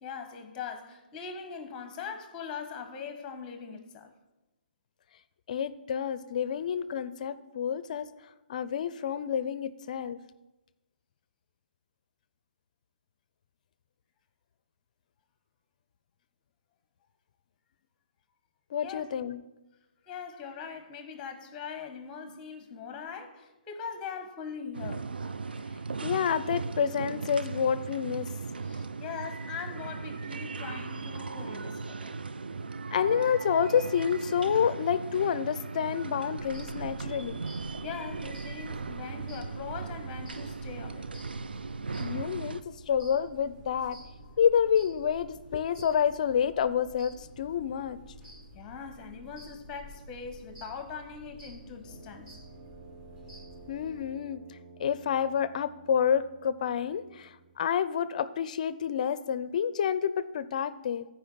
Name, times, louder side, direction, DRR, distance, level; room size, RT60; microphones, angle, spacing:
voice 1, 0.0-4.1 18.8-19.1 20.0-25.1 28.6-32.2 37.8-41.1 44.2-44.4 48.5-52.4, left 6 dB, 20° left, 1.1 m, -41 dB
voice 2, 5.5-8.1 8.5-10.2 18.7-19.4 26.0-28.3 32.9-37.4 42.0-44.0 44.4-48.0 53.7-54.4 54.8-61.1, left 8 dB, 50° left, 0.5 m, -28 dB
sound 1, 24.7-42.6, right 4 dB, 90° right, 0.4 m, -37 dB
sound 2, 36.4-54.1, equal, 20° right, 2.4 m, -51 dB
Brass instrument, 51.8-57.7, right 4 dB, 35° right, 1.3 m, -53 dB
13.5 x 4.9 x 4.0 m
hypercardioid pair, 140°, 5 cm